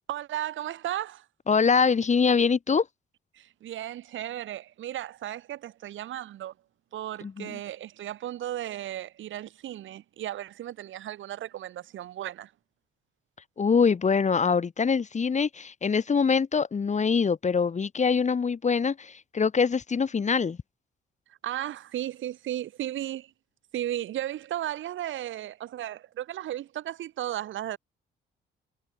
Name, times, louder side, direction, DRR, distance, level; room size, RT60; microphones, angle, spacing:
voice 1, 0.1-1.3 3.3-6.5 6.9-12.5 21.3-23.3 23.7-27.8, right 12 dB, 75° right, 3.6 m, -35 dB
voice 2, 1.5-2.9 7.2-7.6 13.6-20.6, left 5 dB, 35° left, 2.3 m, -24 dB
cardioid pair, 90°, 20 cm